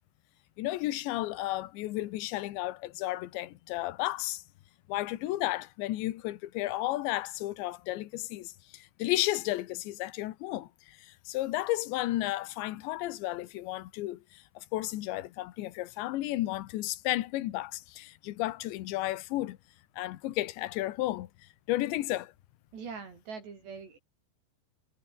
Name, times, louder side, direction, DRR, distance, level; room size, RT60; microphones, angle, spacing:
voice 1, 0.6-4.4 4.9-19.6 20.0-22.3, left 16 dB, 80° left, 3.5 m, -33 dB
voice 2, 22.7-24.0, right 5 dB, 70° right, 7.2 m, -42 dB
omnidirectional pair, 5.2 m